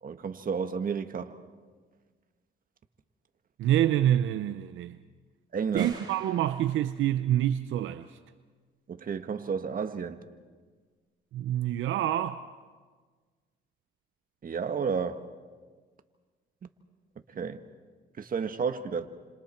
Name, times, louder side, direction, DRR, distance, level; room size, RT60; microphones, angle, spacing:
voice 1, 0.0-1.4 5.5-6.0 8.9-10.2 14.4-15.3 17.3-17.6 18.2-19.1, right 6 dB, 45° right, 1.5 m, -31 dB
voice 2, 3.6-5.0 5.7-8.1 11.3-12.5, right 12 dB, 80° right, 0.7 m, -26 dB
sound 1, 5.8-7.3, right 3 dB, 20° right, 7.8 m, -49 dB
29.5 x 27.0 x 4.4 m
cardioid pair, 90°, 20 cm